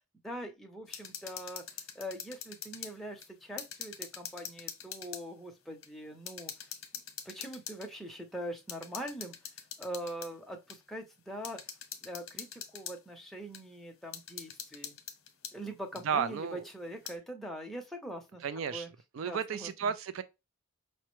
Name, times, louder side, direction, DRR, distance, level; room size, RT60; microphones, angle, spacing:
voice 1, 0.2-6.5 7.2-9.4 9.8-11.6 12.0-15.0 15.5-18.9 19.2-19.9, equal, ahead, 0.7 m, -42 dB
sound 1, 0.9-3.0 3.2-5.3 5.8-5.9 6.3-7.9 8.7-10.3 10.7-10.8 11.4-13.0 13.5-13.6 14.1-15.6 16.0-16.1 16.8-17.2, left 8 dB, 65° left, 0.8 m, -44 dB
voice 2, 16.0-16.6 18.4-18.9 19.1-20.2, right 7 dB, 65° right, 0.4 m, -33 dB
5.6 x 2.1 x 3.0 m
head